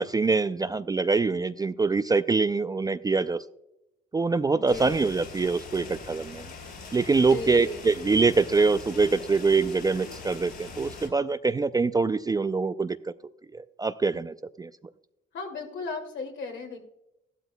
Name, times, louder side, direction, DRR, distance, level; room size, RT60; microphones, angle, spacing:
voice 1, 0.0-3.4 4.1-6.5 6.9-13.0 13.5-14.7, right 4 dB, 20° right, 13 dB, 0.3 m, -24 dB
voice 2, 4.5-5.0 7.2-7.9 15.3-16.8, left 3 dB, 70° left, 2 dB, 2.4 m, -36 dB
sound 1, 4.7-11.1, left 4 dB, 55° left, 3.7 m, -42 dB
14.5 x 12.0 x 2.2 m, 0.85 s
cardioid pair, 90°, 20 cm